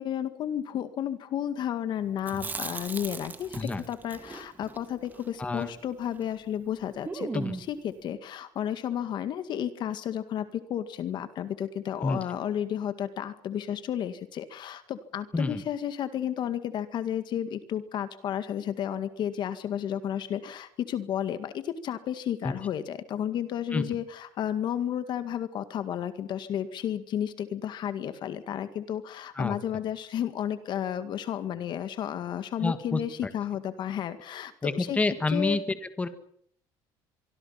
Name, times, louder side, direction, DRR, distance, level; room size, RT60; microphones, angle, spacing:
voice 1, 0.0-35.0 35.3-35.6, left 10 dB, 50° left, 11 dB, 2.0 m, -32 dB
Chewing mastication, 2.2-6.4 6.6-6.7 7.0-7.8, right 4 dB, 20° right, 2.0 m, -38 dB
voice 2, 32.6-33.0 34.6-35.6 36.0-36.1, left 3 dB, 15° left, 10 dB, 1.9 m, -28 dB
24.5 x 24.0 x 5.8 m, 0.65 s
cardioid pair, 130°, 10 cm